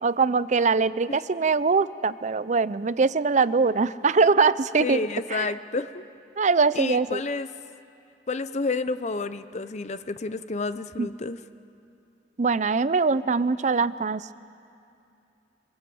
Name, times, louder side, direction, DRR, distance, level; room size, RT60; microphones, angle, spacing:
voice 1, 0.0-5.5 6.4-7.2 11.0-11.1 12.4-14.3, right 4 dB, 40° right, 16 dB, 0.5 m, -22 dB
voice 2, 4.8-6.0 6.7-7.5 8.3-11.4, left 3 dB, 40° left, 12 dB, 0.7 m, -30 dB
25.0 x 22.5 x 7.8 m, 2.6 s
head